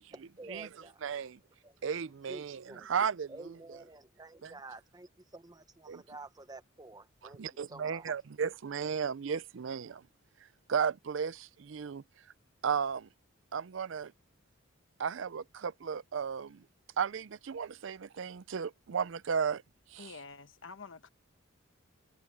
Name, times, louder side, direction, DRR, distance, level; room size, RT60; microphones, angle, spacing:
voice 1, 0.1-1.0 1.6-1.8 2.3-2.9 3.3-8.1, right 2 dB, 20° right, 1.1 m, -50 dB
voice 2, 1.0-1.4 1.8-3.5 4.4-4.5 5.9-6.0 7.4-10.0 10.7-12.0 12.6-13.1 13.5-14.1 15.0-16.6 17.0-19.6 19.9-20.1, right 6 dB, 65° right, 0.5 m, -34 dB
voice 3, 20.0-21.1, left 4 dB, 65° left, 1.2 m, -48 dB
head